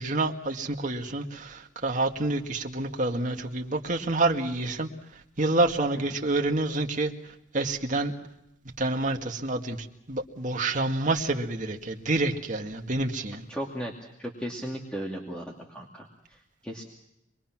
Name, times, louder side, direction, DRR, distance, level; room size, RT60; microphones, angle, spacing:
voice 1, 0.0-4.9 5.4-7.1 7.5-8.1 8.8-13.4, right 2 dB, 40° right, 2 dB, 2.0 m, -28 dB
voice 2, 13.5-13.9 14.2-16.8, equal, 5° left, -1 dB, 2.4 m, -36 dB
26.5 x 22.0 x 6.1 m, 0.83 s
head